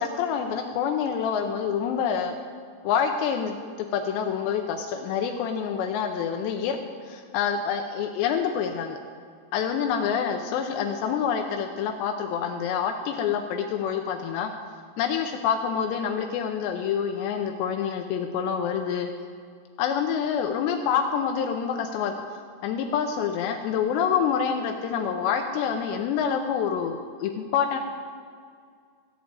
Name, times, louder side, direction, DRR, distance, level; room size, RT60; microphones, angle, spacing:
voice 1, 0.0-2.4 2.8-6.8 7.1-9.0 9.5-14.5 15.0-19.1 19.8-27.8, left 7 dB, 80° left, 5 dB, 2.8 m, -27 dB
15.0 x 5.2 x 8.8 m, 2.1 s
omnidirectional pair, 5.0 m